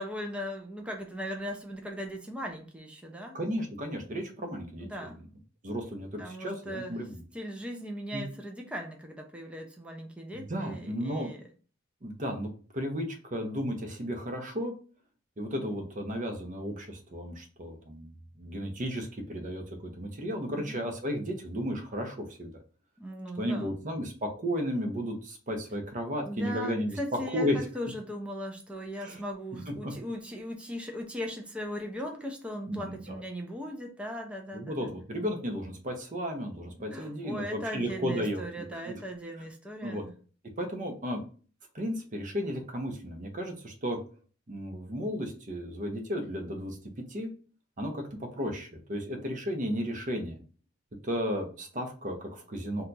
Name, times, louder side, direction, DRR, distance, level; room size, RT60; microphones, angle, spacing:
voice 1, 0.0-3.4 4.9-5.2 6.2-7.0 7.3-11.4 20.6-20.8 23.0-23.8 26.2-34.9 36.8-40.1, equal, 5° right, 1 dB, 0.4 m, -38 dB
voice 2, 3.3-5.1 5.6-7.2 8.1-8.2 10.3-11.3 12.0-14.7 15.4-22.5 23.4-27.0 27.3-27.6 29.0-29.2 29.7-29.9 32.7-33.2 34.5-38.9 39.8-40.0 40.6-41.2 41.7-44.0 44.5-46.8 47.1-47.3 47.8-48.0 48.4-50.4 51.0-52.8, equal, 40° right, 3 dB, 0.7 m, -34 dB
2.8 x 2.3 x 3.8 m, 0.39 s
head